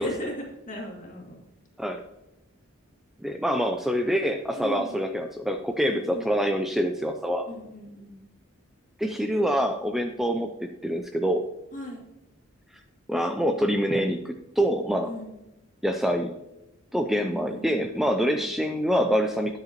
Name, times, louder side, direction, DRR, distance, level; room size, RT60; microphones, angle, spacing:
voice 1, 0.0-1.4 4.6-5.0 5.9-6.3 7.5-8.3 11.7-12.0 15.0-15.3 17.5-17.7 18.2-18.5, left 1 dB, 40° left, -1 dB, 2.2 m, -37 dB
voice 2, 3.2-7.5 9.0-11.4 13.1-15.1 15.8-16.3 16.9-19.6, equal, ahead, 5 dB, 0.3 m, -26 dB
10.0 x 7.7 x 2.9 m, 0.95 s
head